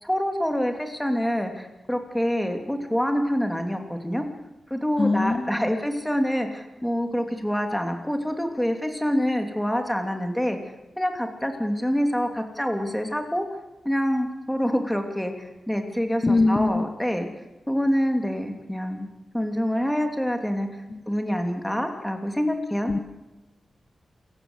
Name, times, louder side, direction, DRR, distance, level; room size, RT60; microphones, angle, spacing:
voice 1, 0.0-4.2 4.7-10.6 11.0-13.5 13.8-17.3 17.7-19.1 19.3-20.7 21.1-22.9, equal, 5° left, 5 dB, 3.0 m, -26 dB
voice 2, 5.0-5.7 16.2-16.9 20.9-21.0 22.9-23.0, left 3 dB, 25° left, 9 dB, 1.0 m, -23 dB
27.5 x 15.5 x 8.1 m, 1.0 s
wide cardioid pair, 100°, 0 cm